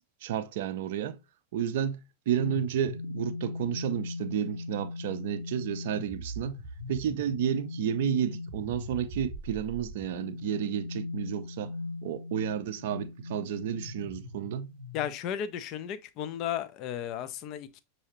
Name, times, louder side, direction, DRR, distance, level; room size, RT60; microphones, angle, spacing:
voice 1, 0.2-1.2 1.5-2.0 2.3-6.6 6.9-11.7 12.0-14.7, right 9 dB, 55° right, 0.4 m, -31 dB
sound 1, 2.3-15.1, left 2 dB, 85° left, 0.9 m, -39 dB
voice 2, 14.9-17.8, left 10 dB, 40° left, 0.4 m, -34 dB
6.3 x 2.7 x 2.8 m
figure-of-eight pair, 90°, 0 cm